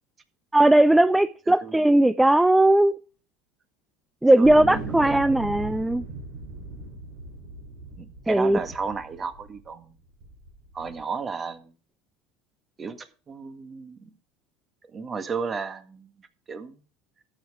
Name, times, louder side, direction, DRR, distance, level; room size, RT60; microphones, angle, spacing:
voice 1, 0.5-2.9 4.2-6.0 8.3-8.6, right 1 dB, 5° right, 0.5 m, -18 dB
voice 2, 1.5-1.8 4.4-5.2 8.0-10.0 10.7-11.7 12.8-14.1 14.9-16.8, right 5 dB, 30° right, 1.8 m, -34 dB
sound 1, 4.4-9.7 10.2-11.0, right 3 dB, 70° right, 7.0 m, -38 dB
12.5 x 7.9 x 4.9 m
hypercardioid pair, 90°, 0 cm